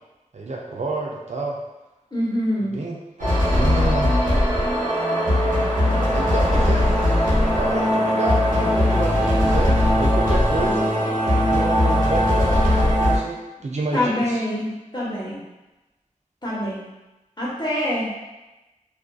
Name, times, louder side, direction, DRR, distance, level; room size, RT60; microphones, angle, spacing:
voice 1, 0.3-1.6 2.6-3.0 3.5-4.2 6.1-6.9 7.6-11.0 11.5-14.4, right 2 dB, 55° right, -1 dB, 0.4 m, -29 dB
voice 2, 2.1-2.8 13.9-15.4 16.4-16.9 17.4-18.1, left 1 dB, 35° left, -7 dB, 0.9 m, -25 dB
sound 1, 3.2-13.2, left 1 dB, 90° right, 0.8 m, -19 dB
2.5 x 2.4 x 2.2 m, 1.1 s
wide cardioid pair, 50°, 14 cm